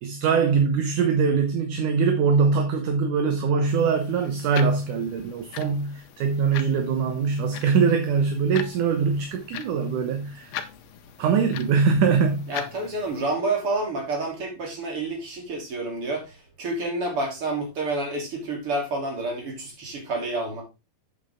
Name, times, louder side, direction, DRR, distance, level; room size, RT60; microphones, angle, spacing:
voice 1, 0.0-10.5 11.2-12.5, right 5 dB, 70° right, 2.4 m, -22 dB
sound 1, 3.7-13.2, left 10 dB, 85° left, 2.7 m, -41 dB
voice 2, 12.5-20.6, right 2 dB, 40° right, 3.7 m, -29 dB
8.3 x 7.8 x 3.6 m
omnidirectional pair, 4.1 m